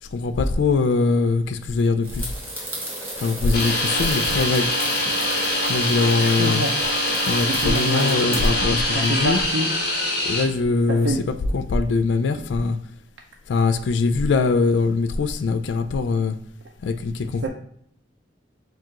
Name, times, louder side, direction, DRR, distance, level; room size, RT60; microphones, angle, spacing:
voice 1, 0.1-2.3 3.2-4.7 5.7-6.7 7.2-9.4 10.2-11.1 11.5-12.8 13.5-16.4 16.8-17.5, left 4 dB, 75° left, 0.3 m, -22 dB
sound 1, 2.0-8.6, right 1 dB, 10° right, 1.1 m, -34 dB
sound 2, 3.5-10.4, left 1 dB, 55° left, 1.1 m, -24 dB
voice 2, 6.2-6.8 7.0-8.2 8.9-9.7 10.9-11.2 17.4-17.5, right 2 dB, 85° right, 0.5 m, -27 dB
4.5 x 2.4 x 3.6 m
head